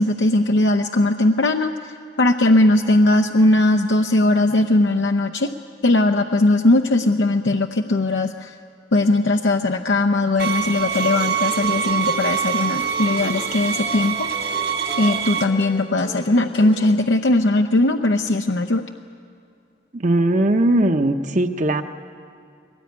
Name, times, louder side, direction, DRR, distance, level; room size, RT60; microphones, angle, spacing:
voice 1, 0.0-1.7 2.2-5.5 5.8-8.5 8.9-14.3 15.0-18.8, left 2 dB, 75° left, 4 dB, 0.7 m, -19 dB
sound 1, 10.4-15.4, right 7 dB, 60° right, 1.2 m, -24 dB
sound 2, 10.8-17.0, left 1 dB, 30° left, 0.8 m, -38 dB
voice 2, 19.9-21.8, right 1 dB, 40° right, 6 dB, 0.9 m, -19 dB
22.5 x 18.5 x 9.5 m, 2.5 s
head